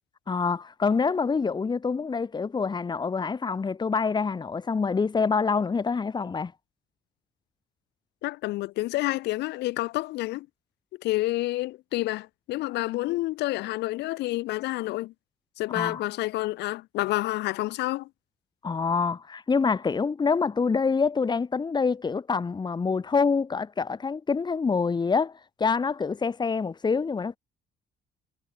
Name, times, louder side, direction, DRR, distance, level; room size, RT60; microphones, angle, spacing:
voice 1, 0.3-6.5 15.7-16.0 18.6-25.3 25.6-27.4, left 5 dB, 25° left, 2.4 m, -26 dB
voice 2, 8.2-10.5 11.0-15.1 15.6-18.1, left 18 dB, 85° left, 5.3 m, -29 dB
cardioid pair, 110°, 17 cm